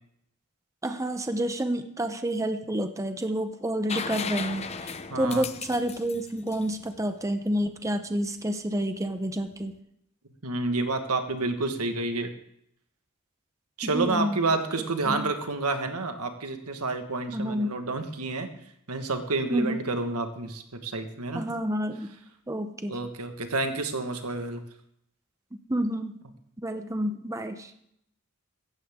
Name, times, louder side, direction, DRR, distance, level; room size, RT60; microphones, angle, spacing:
voice 1, 0.8-9.7 13.8-14.4 15.1-15.3 17.3-17.7 19.5-19.8 21.3-22.1 22.5-23.0 25.5-26.2 26.6-27.7, right 1 dB, 15° right, 7 dB, 0.7 m, -29 dB
sound 1, 3.9-7.6 9.5-9.6, left 6 dB, 30° left, 0.6 m, -36 dB
voice 2, 5.1-5.4 10.4-12.3 13.8-18.5 18.9-21.4 22.9-24.6, right 3 dB, 85° right, 6 dB, 1.6 m, -29 dB
16.0 x 14.0 x 3.7 m, 0.75 s
head